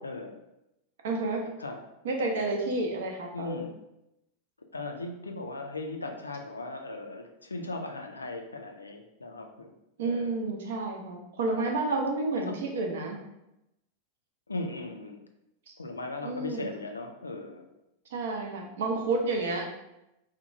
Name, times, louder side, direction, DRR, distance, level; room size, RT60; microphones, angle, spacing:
voice 1, 0.0-0.4 1.6-1.8 3.3-3.7 4.7-9.7 10.0-10.3 11.5-11.7 12.3-12.6 14.5-15.2 15.8-17.7, left 2 dB, 80° left, 4 dB, 0.3 m, -38 dB
voice 2, 1.0-1.5 2.0-3.6 10.0-13.2 15.7-15.8 16.2-16.7 18.1-19.7, right 3 dB, 60° right, 1 dB, 0.5 m, -30 dB
2.8 x 2.2 x 2.6 m, 0.87 s
figure-of-eight pair, 90°, 0 cm